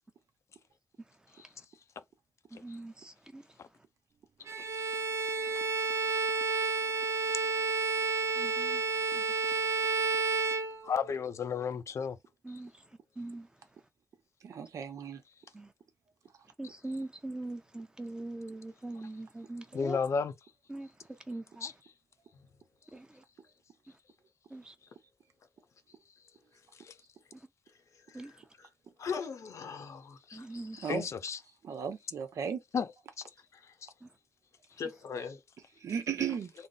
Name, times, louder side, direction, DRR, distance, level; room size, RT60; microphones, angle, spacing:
voice 1, 2.6-3.4 8.4-8.8 9.1-9.2 12.4-12.7 13.2-13.5 15.5-15.7 16.6-20.0 20.7-20.9 21.3-21.7 22.9-23.1 24.5-24.7 28.1-28.3 30.3-30.8, right 2 dB, 15° right, 0.7 m, -41 dB
Bowed string instrument, 4.5-11.2, right 4 dB, 65° right, 0.5 m, -31 dB
voice 2, 10.8-12.2 19.7-20.3 21.6-21.7 30.9-31.4 32.7-32.9 33.8-33.9, left 6 dB, 65° left, 0.5 m, -32 dB
voice 3, 14.4-15.2 30.8-31.1 31.6-32.6 35.8-36.5, right 7 dB, 85° right, 0.8 m, -35 dB
voice 4, 28.1-28.7 29.0-30.9 33.5-33.7 34.8-35.4, left 6 dB, 90° left, 1.0 m, -41 dB
3.6 x 2.1 x 3.9 m
wide cardioid pair, 105°, 5 cm